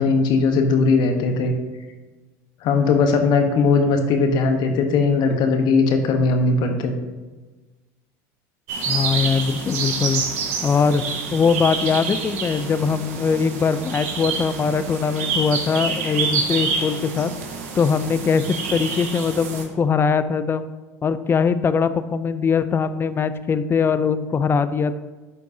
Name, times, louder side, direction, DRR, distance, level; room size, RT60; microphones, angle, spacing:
voice 1, 0.0-1.5 2.6-6.9, left 4 dB, 55° left, 5 dB, 1.1 m, -19 dB
sound 1, 8.7-19.6, right 5 dB, 75° right, 1.3 m, -27 dB
voice 2, 8.8-10.2 10.6-11.0 11.3-17.3 17.8-20.7 21.0-25.0, left 5 dB, 25° left, 12 dB, 0.5 m, -21 dB
12.0 x 4.5 x 2.8 m, 1.2 s
hypercardioid pair, 90°, 9 cm